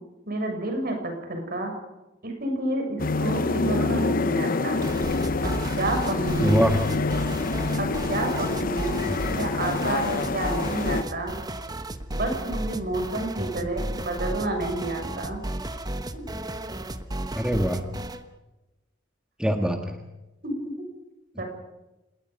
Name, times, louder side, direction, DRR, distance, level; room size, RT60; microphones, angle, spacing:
voice 1, 0.3-1.7 2.2-4.9 5.4-6.6 7.8-9.0 9.3-11.3 12.1-15.4 16.1-16.2 20.4-20.7 21.4-21.5, right 2 dB, 50° right, 3 dB, 7.2 m, -30 dB
sound 1, 3.0-11.0, left 3 dB, 45° left, 0.8 m, -26 dB
sound 2, 4.8-18.2, right 1 dB, 20° right, 1.2 m, -34 dB
voice 2, 6.4-6.8 9.1-9.2 17.3-17.9 19.4-20.0, equal, 5° right, 4 dB, 1.5 m, -23 dB
26.5 x 20.0 x 5.4 m, 1.0 s
head